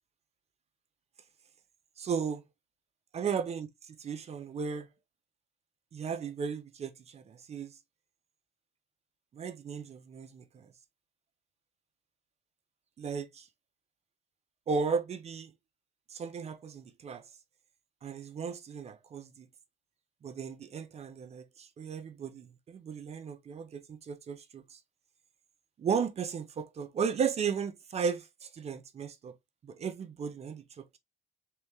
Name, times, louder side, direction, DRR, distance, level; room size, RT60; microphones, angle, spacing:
voice 1, 2.0-2.4 3.1-3.7 4.0-4.9 5.9-7.7 9.3-10.7 13.0-13.5 14.7-15.5 16.1-17.2 18.0-19.5 20.2-24.8 25.8-29.3 29.6-31.0, right 6 dB, 40° right, 0.7 m, -35 dB
3.4 x 3.3 x 3.1 m
cardioid pair, 110°, 17 cm